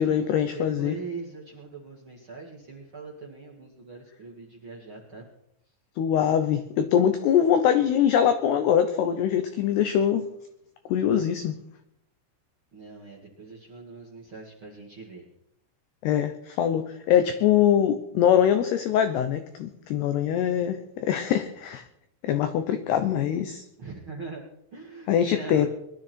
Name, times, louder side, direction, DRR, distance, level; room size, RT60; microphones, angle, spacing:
voice 1, 0.0-1.0 6.0-10.2 10.9-11.6 16.0-21.8 22.2-23.6 25.1-25.7, left 9 dB, 85° left, 9 dB, 2.3 m, -23 dB
voice 2, 0.5-5.3 12.7-15.3 23.8-24.4 24.7-25.7, right 4 dB, 45° right, -1 dB, 1.6 m, -41 dB
22.0 x 12.5 x 4.5 m, 0.79 s
omnidirectional pair, 5.9 m